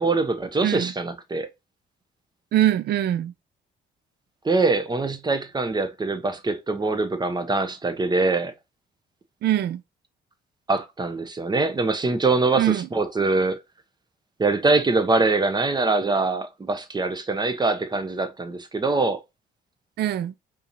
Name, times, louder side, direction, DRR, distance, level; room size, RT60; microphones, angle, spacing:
voice 1, 0.0-1.5 4.4-8.5 10.7-13.6 14.4-19.2, right 3 dB, 20° right, 0.7 m, -23 dB
voice 2, 0.6-0.9 2.5-3.3 9.4-9.8 12.6-12.9 20.0-20.3, right 12 dB, 55° right, 0.4 m, -23 dB
3.8 x 2.8 x 2.6 m
cardioid pair, 90°, 20 cm